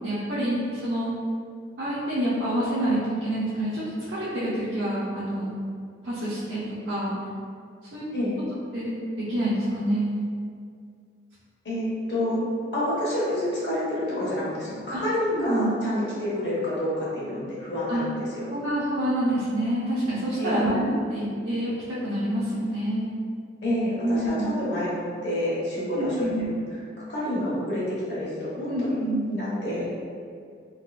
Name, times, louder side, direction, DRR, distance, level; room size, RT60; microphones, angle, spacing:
voice 1, 0.0-1.1 1.8-5.5 6.0-7.1 7.9-8.0 8.7-10.2 14.9-15.0 15.3-15.7 17.9-18.1 18.5-23.1 24.0-24.5 25.9-26.5 28.7-29.3, right 1 dB, 75° right, -10 dB, 0.6 m, -27 dB
voice 2, 11.6-12.4 12.7-18.4 20.4-20.6 23.6-26.5 27.0-28.9 29.3-29.9, left 1 dB, 65° left, -8 dB, 1.1 m, -28 dB
3.5 x 2.4 x 2.4 m, 2.2 s
head